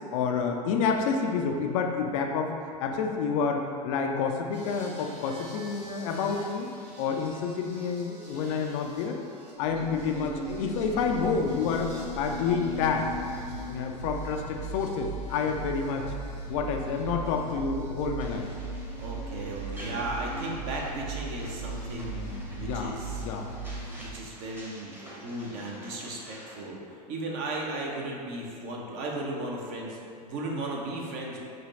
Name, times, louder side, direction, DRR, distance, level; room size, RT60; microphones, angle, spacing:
voice 1, 0.0-2.5 2.8-6.7 7.0-9.2 9.6-11.9 12.2-13.1 13.7-16.1 16.5-18.5 21.9-23.5, left 5 dB, 50° left, 3 dB, 0.5 m, -29 dB
sound 1, 4.5-24.1, right 2 dB, 90° right, 1.2 m, -38 dB
sound 2, 18.2-26.7, equal, 10° right, 0.9 m, -49 dB
voice 2, 19.0-22.2 22.5-23.2 24.0-31.5, right 2 dB, 50° right, -1 dB, 0.9 m, -36 dB
5.1 x 2.2 x 4.1 m, 2.4 s
figure-of-eight pair, 85°, 21 cm